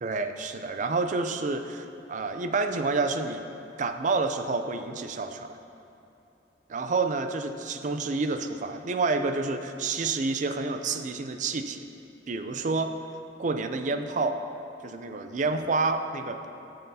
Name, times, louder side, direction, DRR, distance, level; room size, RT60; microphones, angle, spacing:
voice 1, 0.0-3.4 3.8-5.6 6.7-11.9 12.3-12.9 13.4-14.4 14.8-16.5, right 3 dB, 40° right, 8 dB, 0.4 m, -29 dB
12.5 x 6.7 x 2.8 m, 2.9 s
head